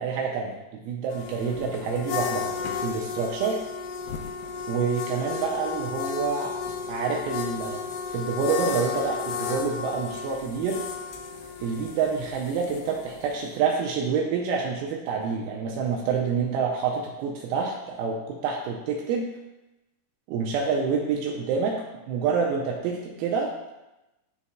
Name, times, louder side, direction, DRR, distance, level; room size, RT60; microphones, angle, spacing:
voice 1, 0.0-3.6 4.7-6.5 6.9-7.8 8.1-10.8 11.6-19.3 20.3-23.7, right 5 dB, 85° right, -1 dB, 2.2 m, -27 dB
sound 1, 1.1-13.6, left 6 dB, 80° left, 2.6 m, -33 dB
9.8 x 4.1 x 2.3 m, 0.98 s
omnidirectional pair, 4.9 m